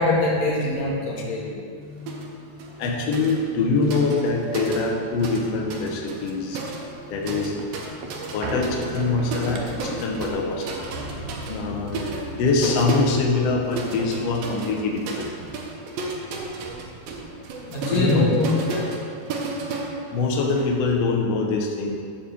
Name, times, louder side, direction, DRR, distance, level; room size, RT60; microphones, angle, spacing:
voice 1, 0.0-1.5 17.7-18.8, left 2 dB, 55° left, -5 dB, 2.6 m, -23 dB
voice 2, 1.8-10.9 11.5-15.3 17.5-18.3 19.3-19.4 20.1-22.0, left 3 dB, 90° left, 1 dB, 1.3 m, -25 dB
sound 1, 2.1-2.3 2.6-5.4 5.7-20.7, right 3 dB, 90° right, 2.7 m, -34 dB
sound 2, 6.8-15.5 15.9-16.0 16.2-17.6 18.1-18.2, right 1 dB, 70° right, 2.1 m, -37 dB
8.3 x 4.2 x 6.9 m, 2.2 s
omnidirectional pair, 4.0 m